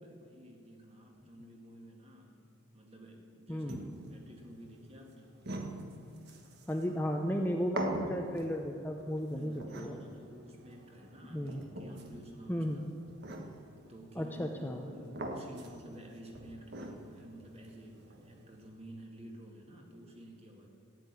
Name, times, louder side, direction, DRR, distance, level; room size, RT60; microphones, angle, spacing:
voice 1, 0.0-5.4 9.3-12.7 13.9-20.7, right 1 dB, 30° right, 1 dB, 2.1 m, -51 dB
voice 2, 3.5-3.8 6.7-10.0 11.3-11.6 12.5-12.8 14.2-14.9, equal, 10° left, 3 dB, 0.7 m, -34 dB
sound 1, 3.7-18.7, right 1 dB, 55° right, 1.5 m, -45 dB
14.5 x 8.8 x 9.6 m, 2.5 s
head